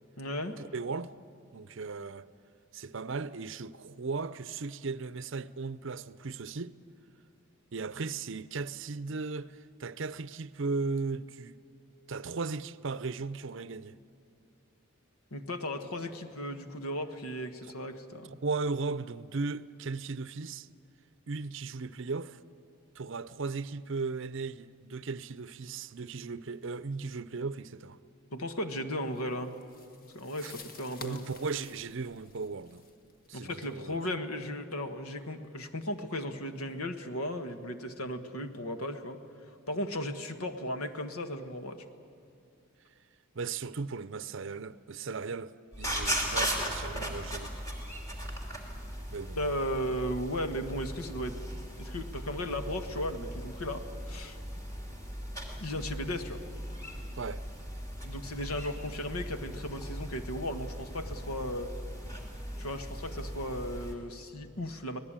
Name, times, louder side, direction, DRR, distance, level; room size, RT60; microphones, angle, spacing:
voice 1, 0.2-0.6 15.3-18.4 28.3-29.6 30.1-31.2 33.3-39.2 39.5-41.8 46.3-46.4 49.3-51.4 51.8-54.4 55.6-56.4 58.0-61.7 62.6-65.0, left 1 dB, 80° left, 1.6 m, -36 dB
voice 2, 0.7-1.1 1.5-2.3 2.7-6.7 7.7-11.6 12.1-14.0 18.3-20.7 21.3-22.4 22.9-28.0 30.4-30.5 31.0-32.8 33.3-34.0 43.3-47.5 49.1-49.4 57.2-57.4, right 4 dB, 55° right, 0.6 m, -36 dB
sound 1, 29.1-34.0, left 3 dB, 40° left, 1.6 m, -52 dB
sound 2, 45.7-63.9, equal, 15° left, 2.8 m, -38 dB
25.5 x 18.0 x 8.9 m
head